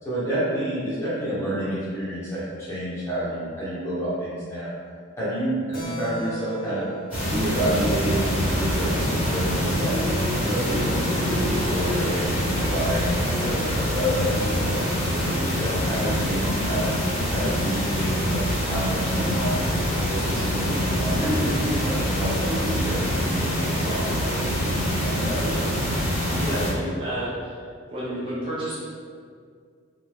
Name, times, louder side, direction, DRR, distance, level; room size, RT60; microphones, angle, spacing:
voice 1, 0.0-4.7 5.2-6.9 7.2-9.9 10.4-13.6 13.9-16.9 17.3-19.7 20.1-24.3 24.6-25.6, equal, 15° left, -10 dB, 0.9 m, -29 dB
Keyboard (musical), 5.7-9.8, right 2 dB, 40° left, 0.6 m, -39 dB
sound 1, 7.1-26.7, equal, 5° right, 1.1 m, -25 dB
voice 2, 26.3-27.6 27.9-28.8, equal, 25° right, -9 dB, 0.4 m, -30 dB
2.5 x 2.2 x 3.4 m, 2.1 s
head